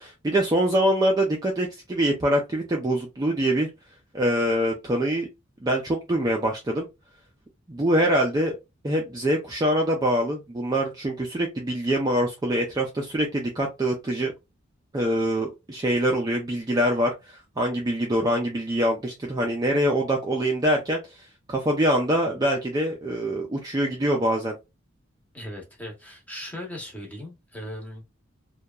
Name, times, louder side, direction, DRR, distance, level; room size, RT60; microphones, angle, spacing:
voice 1, 0.0-3.7 4.1-5.3 5.6-6.9 7.7-8.5 8.8-14.3 14.9-21.0 21.5-24.5, right 1 dB, 20° right, 0.4 m, -24 dB
voice 2, 25.3-28.1, left 1 dB, 10° left, 0.8 m, -38 dB
2.8 x 2.2 x 2.2 m
head